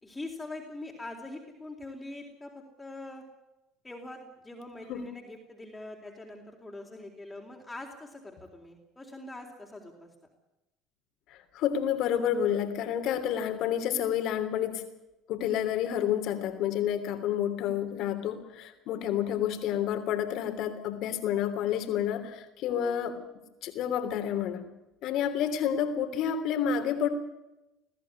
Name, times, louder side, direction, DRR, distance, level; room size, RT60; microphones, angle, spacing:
voice 1, 0.0-3.2 3.8-10.1 22.6-23.2, left 2 dB, 15° left, 0 dB, 4.0 m, -43 dB
voice 2, 11.3-14.8 15.3-23.2 23.6-24.6 25.0-27.1, left 9 dB, 65° left, 8 dB, 3.2 m, -29 dB
21.5 x 14.5 x 9.8 m, 0.96 s
hypercardioid pair, 75°, 0 cm